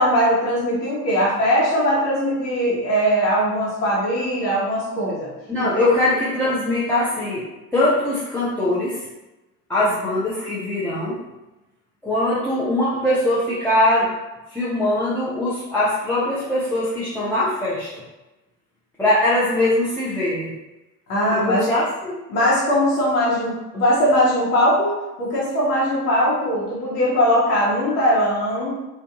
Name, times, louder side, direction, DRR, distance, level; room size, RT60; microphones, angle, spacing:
voice 1, 0.0-5.3 5.6-5.9 21.1-21.7 22.3-28.7, equal, 75° left, -6 dB, 1.0 m, -20 dB
voice 2, 5.5-9.0 9.7-11.2 12.0-14.1 14.5-18.0 19.0-20.5 21.3-22.2, left 1 dB, 5° left, -10 dB, 0.5 m, -21 dB
2.5 x 2.4 x 2.4 m, 1.0 s
figure-of-eight pair, 60°, 48 cm